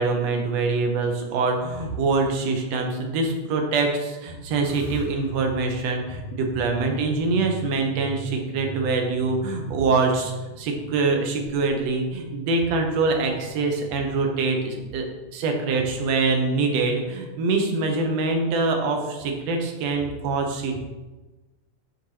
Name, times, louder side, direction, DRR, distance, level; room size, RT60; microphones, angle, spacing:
voice 1, 0.0-15.1 15.3-20.8, right 3 dB, 65° right, 3 dB, 1.9 m, -24 dB
sound 1, 4.6-15.2, equal, 90° left, 2.7 m, -42 dB
11.5 x 4.2 x 3.3 m, 1.2 s
omnidirectional pair, 3.6 m